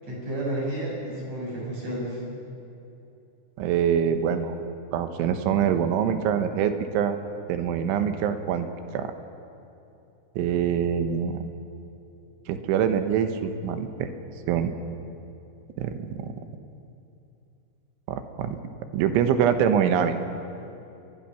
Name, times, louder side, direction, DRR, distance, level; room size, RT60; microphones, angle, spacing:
voice 1, 0.0-2.2, right 1 dB, 35° right, -3 dB, 7.5 m, -31 dB
voice 2, 3.6-4.6 4.9-7.2 7.5-8.7 8.9-9.1 10.4-11.4 12.5-14.1 14.5-14.7 15.8-16.3 18.1-18.6 18.9-20.2, right 8 dB, 90° right, 8 dB, 3.6 m, -24 dB
29.0 x 22.0 x 6.0 m, 2.8 s
omnidirectional pair, 5.3 m